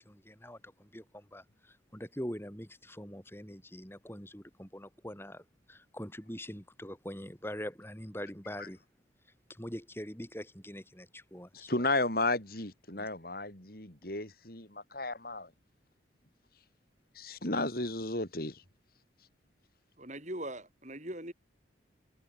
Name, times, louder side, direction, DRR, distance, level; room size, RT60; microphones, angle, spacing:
voice 1, 0.0-1.4 1.9-8.8 9.5-11.7 13.0-13.1, equal, 10° left, 6.5 m, -43 dB
voice 2, 11.5-15.5 17.1-18.6, left 2 dB, 50° left, 4.8 m, -33 dB
voice 3, 20.0-21.3, right 1 dB, 40° right, 7.5 m, -41 dB
head